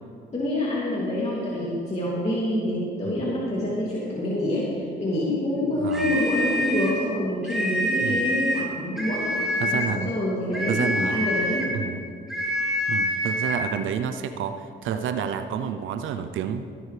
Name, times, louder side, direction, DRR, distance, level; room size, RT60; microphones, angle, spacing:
voice 1, 0.3-11.7, left 1 dB, 35° left, -7 dB, 2.7 m, -27 dB
voice 2, 5.8-6.2 8.0-8.3 9.6-10.1 10.7-11.3 11.7-12.0 12.9-16.7, right 8 dB, 80° right, 8 dB, 0.6 m, -29 dB
sound 1, 5.9-7.0 7.4-8.7 9.0-9.9 10.5-11.8 12.3-13.6, equal, ahead, 3.3 m, -26 dB
17.5 x 11.0 x 3.4 m, 2.2 s
cardioid pair, 90°, 20 cm